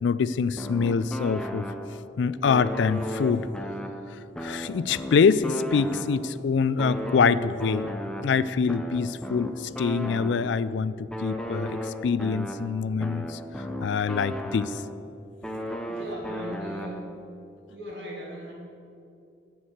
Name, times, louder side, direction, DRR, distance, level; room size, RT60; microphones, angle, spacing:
voice 1, 0.0-1.7 2.2-3.5 4.4-14.8, left 5 dB, 75° left, 16 dB, 0.4 m, -25 dB
sound 1, 0.6-2.1 2.5-6.4 6.8-10.7 11.1-15.1 15.4-17.3, equal, 5° left, 0.5 m, -35 dB
voice 2, 15.9-17.0 17.7-18.5, equal, 65° right, -3 dB, 2.7 m, -38 dB
13.5 x 4.7 x 8.0 m, 2.5 s
head